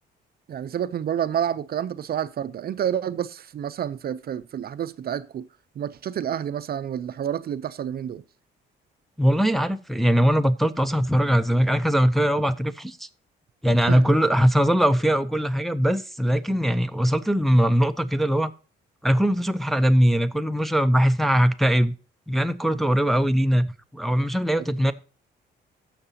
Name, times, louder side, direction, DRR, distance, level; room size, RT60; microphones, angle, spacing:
voice 1, 0.5-5.5 5.8-8.2 13.8-14.1, right 9 dB, 50° right, 0.5 m, -29 dB
voice 2, 9.2-13.1 13.6-18.5 19.0-21.9 22.3-24.9, equal, ahead, 0.5 m, -21 dB
15.5 x 5.9 x 2.8 m
cardioid pair, 90°, 20 cm